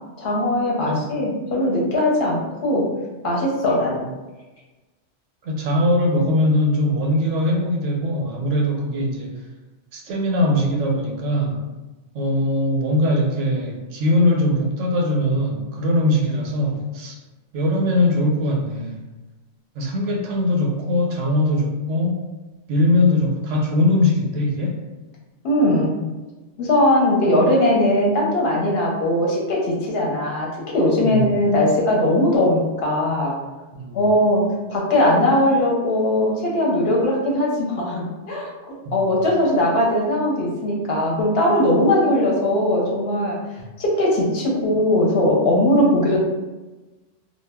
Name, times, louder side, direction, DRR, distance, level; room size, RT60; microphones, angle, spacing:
voice 1, 0.2-2.9 3.2-4.1 25.4-26.0 26.6-33.4 33.9-43.4 43.8-46.2, left 1 dB, 60° left, -3 dB, 0.8 m, -20 dB
voice 2, 5.4-9.4 9.9-11.6 12.1-17.2 17.5-19.0 19.8-22.3 22.7-24.8 31.0-31.3 33.7-34.1 38.9-39.0 43.6-43.7, left 1 dB, 80° right, 1 dB, 0.9 m, -21 dB
2.2 x 2.0 x 3.3 m, 1.2 s
omnidirectional pair, 1.2 m